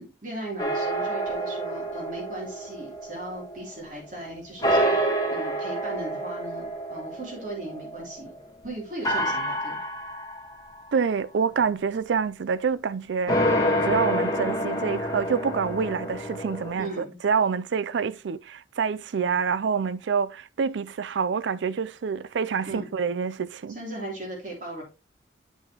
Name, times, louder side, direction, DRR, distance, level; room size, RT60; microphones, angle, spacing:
voice 1, 0.0-8.3 8.6-9.9 16.7-17.2 22.7-22.9 23.7-24.8, right 1 dB, 45° right, 3.0 m, -37 dB
sound 1, 0.6-4.2 4.6-8.4 9.0-10.9 13.3-16.7, equal, 20° left, 1.3 m, -28 dB
voice 2, 10.9-23.8, right 6 dB, 75° right, 0.4 m, -27 dB
8.3 x 6.1 x 2.9 m
head